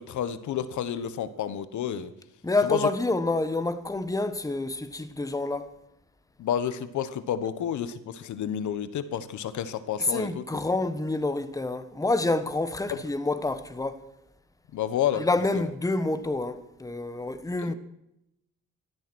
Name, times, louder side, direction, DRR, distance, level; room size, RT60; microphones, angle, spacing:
voice 1, 0.0-2.1 2.6-2.9 6.4-10.4 12.9-13.0 14.7-15.2 15.5-15.6 17.6-17.7, left 9 dB, 75° left, 1.2 m, -30 dB
voice 2, 2.4-5.7 10.0-14.0 15.2-17.7, left 2 dB, 10° left, 1.2 m, -28 dB
15.5 x 13.0 x 6.2 m
cardioid pair, 90°, 30 cm